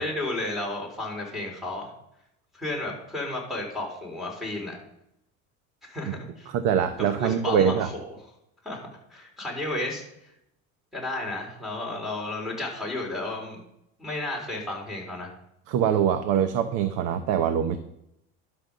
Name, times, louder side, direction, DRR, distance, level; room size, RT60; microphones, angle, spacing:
voice 1, 0.0-1.9 2.5-4.8 5.8-6.5 7.0-8.0 8.6-8.8 9.1-10.0 10.9-13.6 14.0-15.3, left 2 dB, ahead, 0 dB, 4.0 m, -32 dB
voice 2, 6.5-7.9 15.7-17.8, right 8 dB, 70° right, 9 dB, 1.0 m, -23 dB
11.5 x 5.7 x 6.8 m, 0.80 s
cardioid pair, 135°, 32 cm